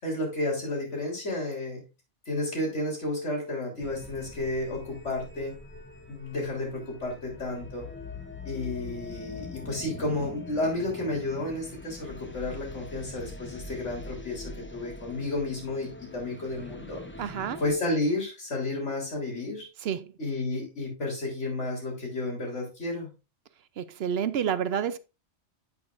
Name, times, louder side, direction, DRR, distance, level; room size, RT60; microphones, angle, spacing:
voice 1, 0.0-1.8 2.3-5.5 6.1-7.9 8.5-17.0 17.6-19.7 20.2-23.1, left 2 dB, 85° left, 3.9 m, -32 dB
sound 1, 3.8-17.7, left 3 dB, 10° left, 0.7 m, -43 dB
voice 2, 17.2-17.6 19.8-20.2 23.8-25.0, right 8 dB, 65° right, 0.8 m, -29 dB
8.4 x 8.4 x 2.5 m
omnidirectional pair, 1.2 m